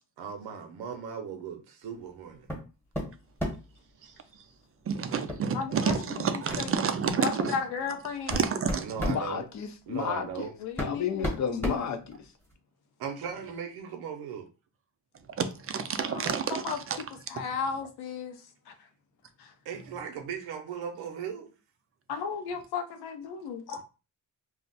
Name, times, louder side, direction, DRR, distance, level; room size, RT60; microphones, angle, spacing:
voice 1, 0.2-2.5 4.0-4.5 8.8-9.4 9.9-10.5 13.0-14.5 19.6-21.5, right 7 dB, 75° right, 0.6 m, -38 dB
sound 1, 2.5-2.7 2.9-3.7 5.3-5.5 5.9-6.0 6.5-6.7 7.5-7.6 8.1-9.2 10.3-10.4 10.8-12.5, equal, 5° left, 1.2 m, -33 dB
voice 2, 4.9-7.6 8.3-8.9 15.4-17.0 23.7-23.8, right 6 dB, 40° right, 0.4 m, -29 dB
voice 3, 5.5-6.7 7.2-8.4 10.6-11.4 16.1-16.8 17.3-18.4 18.7-18.8 19.4-19.5 22.1-23.8, left 6 dB, 90° left, 0.7 m, -35 dB
voice 4, 9.0-10.5 10.8-12.3, left 7 dB, 50° left, 0.6 m, -32 dB
2.4 x 2.0 x 3.9 m
cardioid pair, 100°, 38 cm